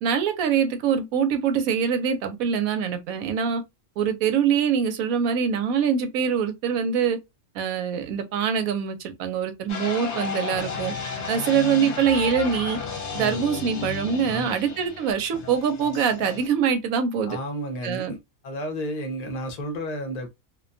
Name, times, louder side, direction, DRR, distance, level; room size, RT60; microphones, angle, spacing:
voice 1, 0.0-3.6 4.0-7.2 7.5-10.9 11.3-12.8 13.1-17.4 17.8-18.1, right 7 dB, 85° right, 1.0 m, -24 dB
sound 1, 9.7-16.5, left 5 dB, 60° left, 0.9 m, -33 dB
voice 2, 17.3-18.2 18.4-20.3, equal, 40° left, 0.6 m, -32 dB
2.5 x 2.2 x 2.5 m
omnidirectional pair, 1.4 m